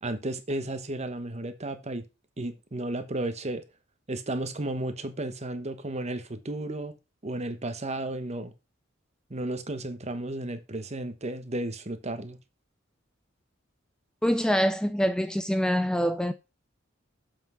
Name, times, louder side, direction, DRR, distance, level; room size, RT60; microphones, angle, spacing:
voice 1, 0.0-2.0 2.4-3.6 4.1-7.0 7.2-8.5 9.3-12.4, right 1 dB, 35° right, 1.2 m, -33 dB
voice 2, 14.2-16.3, equal, 5° left, 0.4 m, -25 dB
7.3 x 5.9 x 5.5 m
head